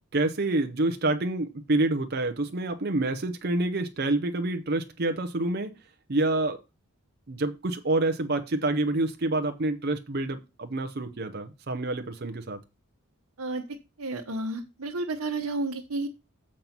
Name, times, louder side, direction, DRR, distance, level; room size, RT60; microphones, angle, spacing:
voice 1, 0.1-5.7 6.1-6.6 7.3-12.6, right 2 dB, 45° right, 0.7 m, -27 dB
voice 2, 14.0-16.1, right 2 dB, 85° right, 1.0 m, -31 dB
7.4 x 5.3 x 5.9 m
head